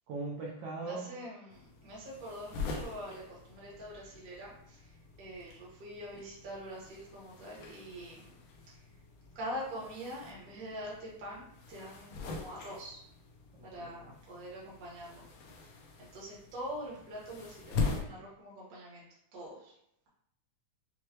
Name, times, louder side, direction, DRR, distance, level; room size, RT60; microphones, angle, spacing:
voice 1, 0.1-1.2 13.5-14.1, right 3 dB, 80° right, -4 dB, 1.3 m, -40 dB
voice 2, 0.8-4.9 5.2-8.3 8.7-8.8 9.3-13.0 13.6-15.2 16.0-19.1 19.3-19.7, equal, 50° right, -5 dB, 1.0 m, -44 dB
sound 1, 1.5-18.0, left 4 dB, 80° left, 1.4 m, -43 dB
6.3 x 2.2 x 2.9 m, 0.76 s
omnidirectional pair, 3.5 m